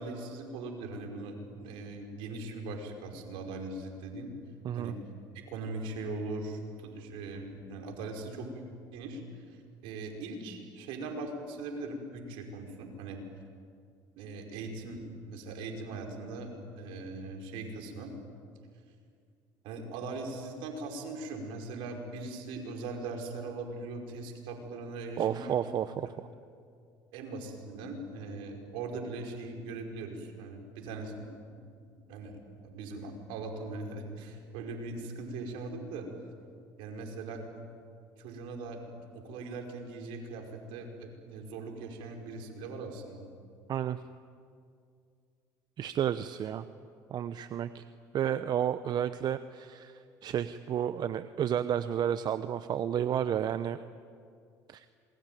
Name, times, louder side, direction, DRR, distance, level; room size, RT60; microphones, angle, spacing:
voice 1, 0.0-1.4 1.6-4.3 4.7-5.0 5.3-8.6 8.9-9.2 9.8-13.2 14.2-18.1 19.6-25.6 27.1-31.3 32.1-36.1 36.8-37.7 38.2-43.2, right 3 dB, 75° right, 2 dB, 5.2 m, -40 dB
voice 2, 25.2-26.3 43.7-44.0 45.8-46.6 47.1-47.8 48.1-53.8 54.7-54.9, right 9 dB, 50° right, 12 dB, 0.9 m, -31 dB
27.0 x 22.0 x 9.3 m, 2.3 s
supercardioid pair, 75°, 9 cm